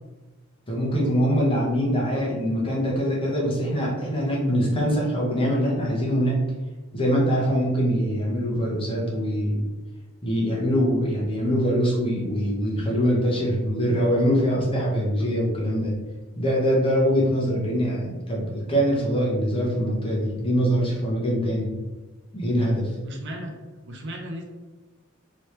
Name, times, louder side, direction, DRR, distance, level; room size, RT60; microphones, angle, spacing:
voice 1, 0.7-6.4 6.9-9.7 10.2-15.9 16.3-21.7 22.3-22.9, equal, 25° left, -3 dB, 0.9 m, -23 dB
voice 2, 23.0-23.5 23.9-24.4, equal, 60° right, 1 dB, 0.7 m, -35 dB
3.1 x 2.9 x 3.2 m, 1.2 s
head